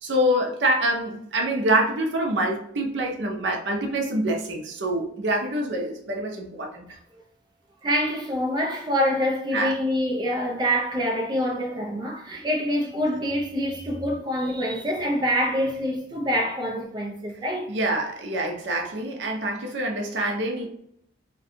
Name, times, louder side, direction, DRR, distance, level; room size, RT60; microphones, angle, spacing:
voice 1, 0.0-6.9 9.5-9.7 17.7-20.6, right 1 dB, 85° right, 0.6 m, -25 dB
voice 2, 7.8-17.7, equal, 25° right, 0.5 m, -26 dB
2.6 x 2.2 x 2.7 m
head